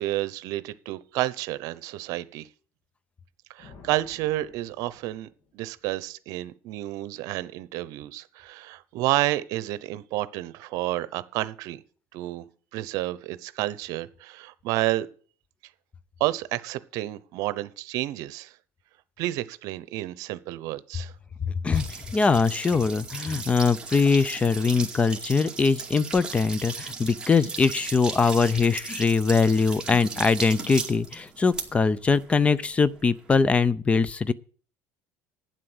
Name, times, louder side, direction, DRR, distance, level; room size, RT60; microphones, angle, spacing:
voice 1, 0.0-2.5 3.5-5.3 5.5-11.8 12.1-12.4 12.7-15.1 16.2-18.5 19.2-21.1, right 16 dB, 70° right, 0.8 m, -30 dB
sound 1, 3.6-5.9, left 5 dB, 55° left, 2.2 m, -53 dB
voice 2, 21.4-34.3, left 4 dB, 20° left, 0.5 m, -22 dB
sound 2, 21.7-33.4, right 4 dB, 15° right, 2.3 m, -37 dB
9.7 x 7.7 x 7.9 m
cardioid pair, 125°, 6 cm